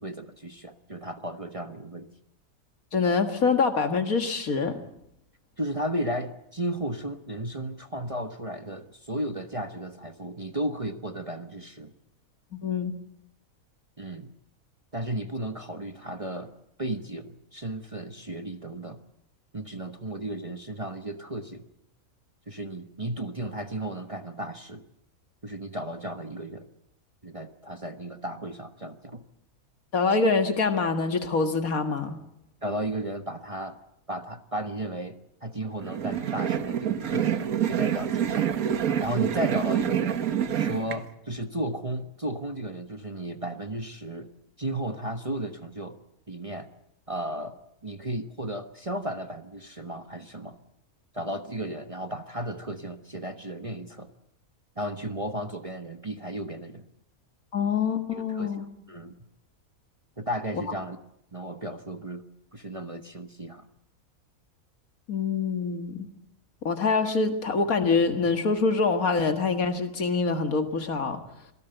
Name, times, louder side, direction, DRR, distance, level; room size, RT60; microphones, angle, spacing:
voice 1, 0.0-2.1 5.6-11.9 14.0-14.3 14.9-16.5 16.8-19.0 19.5-21.7 22.5-24.8 25.4-26.7 27.2-29.2 32.6-33.8 34.1-38.5 39.0-40.2 40.6-44.3 44.6-46.0 46.3-46.7 47.1-50.6 51.1-54.1 54.8-56.8 58.1-59.1 60.2-61.0 61.3-62.2 62.5-63.7, right 1 dB, 25° right, 7 dB, 1.2 m, -34 dB
voice 2, 2.9-4.8 12.5-13.0 29.9-32.2 57.5-58.7 65.1-66.1 66.6-71.2, left 4 dB, 75° left, 7 dB, 2.2 m, -25 dB
sound 1, 35.8-41.0, right 9 dB, 80° right, 1.6 m, -27 dB
26.5 x 18.0 x 8.0 m, 0.78 s
omnidirectional pair, 1.5 m